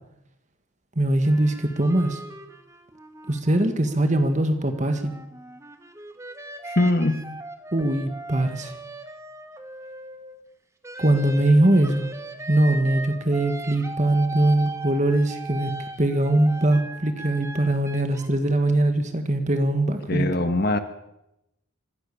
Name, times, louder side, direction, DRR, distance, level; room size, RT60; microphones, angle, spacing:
voice 1, 1.0-2.2 3.3-5.1 7.7-8.7 11.0-12.1 12.5-15.7 16.0-20.3, right 1 dB, 35° right, 7 dB, 1.8 m, -21 dB
sound 1, 1.2-4.2 4.6-10.4 10.8-18.3, right 2 dB, 15° right, 1.4 m, -39 dB
voice 2, 6.6-7.2 20.1-20.8, left 2 dB, 50° left, 9 dB, 1.4 m, -22 dB
25.0 x 16.5 x 7.1 m, 0.87 s
head